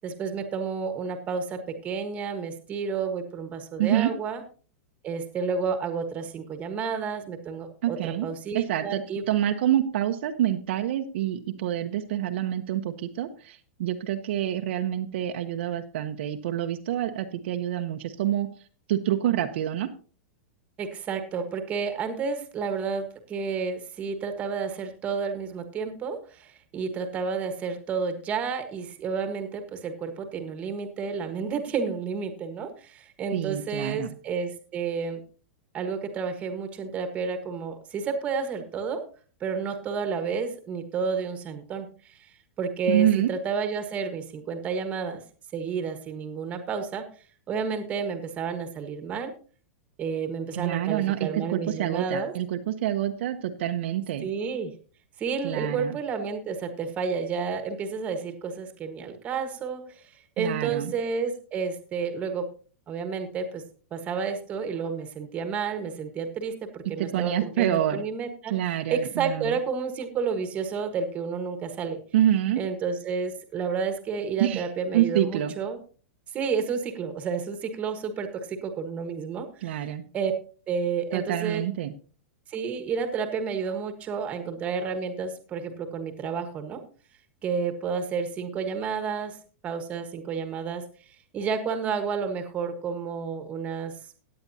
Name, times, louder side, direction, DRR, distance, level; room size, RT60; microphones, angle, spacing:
voice 1, 0.0-4.4 5.0-9.2 20.8-35.2 35.7-39.0 39.4-42.3 42.6-45.2 45.5-47.1 47.5-49.3 50.0-52.3 54.2-54.7 55.2-62.5 62.9-63.6 63.9-72.0 72.6-75.8 76.3-79.9 80.1-80.3 80.7-81.6 82.5-86.8 87.4-89.4 89.6-90.8 91.3-93.9, right 5 dB, 20° right, 8 dB, 1.4 m, -31 dB
voice 2, 3.8-4.1 7.8-18.5 18.9-19.9 33.3-34.2 42.9-43.3 50.5-54.3 55.4-56.0 60.4-60.9 67.0-68.0 68.5-69.6 72.1-72.6 74.4-74.7 74.9-75.5 79.6-80.0 81.1-81.9, right 12 dB, 55° right, 5 dB, 0.9 m, -27 dB
16.5 x 9.5 x 2.8 m, 0.39 s
supercardioid pair, 165°, 7 cm